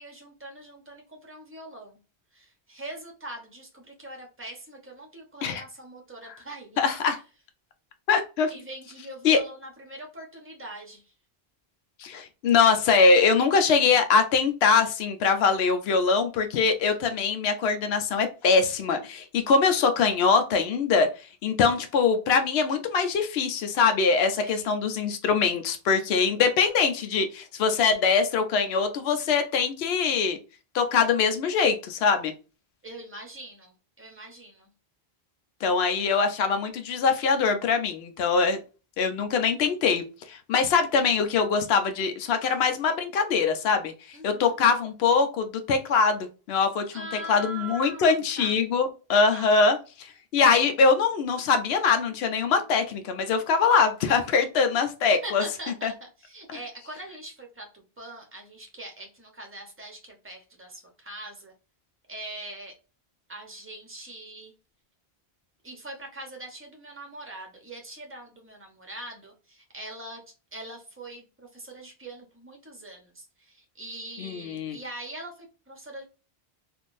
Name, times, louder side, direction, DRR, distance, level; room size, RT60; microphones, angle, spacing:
voice 1, 0.0-2.0 2.3-7.1 8.5-11.1 24.3-24.7 32.8-34.7 44.1-44.5 46.9-48.5 49.3-49.5 55.1-61.5 62.1-62.7 63.3-64.5 65.6-70.2 70.5-71.2 71.5-76.1, right 1 dB, 15° right, 2 dB, 0.8 m, -42 dB
voice 2, 6.8-7.2 8.1-8.5 9.2-9.4 12.0-21.1 21.4-30.4 30.7-32.3 35.6-38.6 39.0-40.0 40.3-43.9 44.2-46.8 47.3-49.8 50.3-55.4 55.8-55.9 74.2-74.8, left 5 dB, 75° left, 7 dB, 0.8 m, -23 dB
3.5 x 2.5 x 2.5 m, 0.33 s
omnidirectional pair, 1.1 m